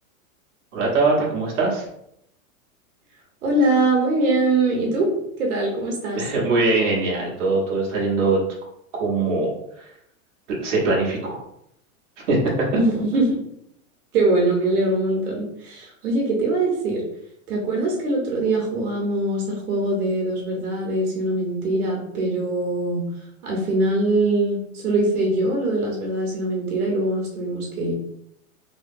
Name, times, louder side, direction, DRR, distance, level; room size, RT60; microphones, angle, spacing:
voice 1, 0.7-1.9 6.1-8.4 8.9-9.5 10.6-11.4 12.3-12.4, right 3 dB, 55° right, -4 dB, 1.3 m, -21 dB
voice 2, 3.4-5.1 5.4-6.2 12.7-13.4 14.1-17.0 17.5-23.0 23.4-27.9, right 2 dB, 80° right, -1 dB, 1.3 m, -22 dB
3.3 x 3.0 x 2.6 m, 0.75 s
supercardioid pair, 180°, 43 cm